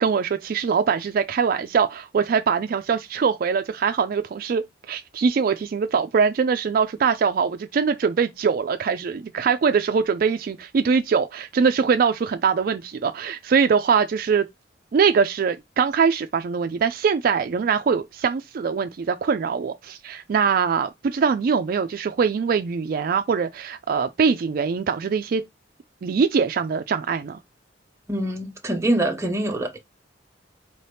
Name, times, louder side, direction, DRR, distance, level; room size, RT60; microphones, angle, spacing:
voice 1, 0.0-14.5 14.9-25.4 26.0-27.4, right 6 dB, 55° right, 0.3 m, -22 dB
voice 2, 28.1-29.8, right 1 dB, 15° right, 0.8 m, -24 dB
4.5 x 2.8 x 3.3 m
head